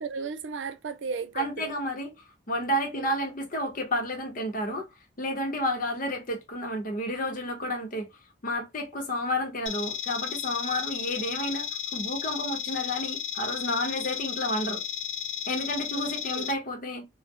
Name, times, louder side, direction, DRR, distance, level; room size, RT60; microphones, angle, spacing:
voice 1, 0.0-1.7 2.9-3.1 15.9-16.0 16.3-16.5, right 5 dB, 90° right, 0.4 m, -35 dB
voice 2, 1.4-2.1 2.5-4.9 5.2-8.1 8.4-14.8 15.5-17.0, equal, 50° left, 0.8 m, -31 dB
sound 1, 9.7-16.5, left 9 dB, 90° left, 0.6 m, -34 dB
2.2 x 2.1 x 2.6 m
head